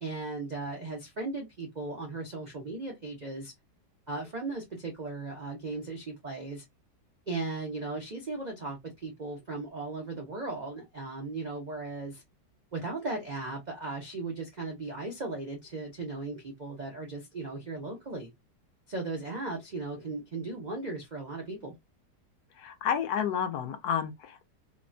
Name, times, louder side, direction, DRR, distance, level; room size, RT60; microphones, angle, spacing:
voice 1, 0.0-3.5 4.1-6.6 7.3-12.2 12.7-18.3 18.9-21.8, right 3 dB, 65° right, 0.4 m, -37 dB
voice 2, 22.6-24.5, left 8 dB, 70° left, 1.0 m, -30 dB
3.4 x 2.1 x 2.5 m
omnidirectional pair, 1.8 m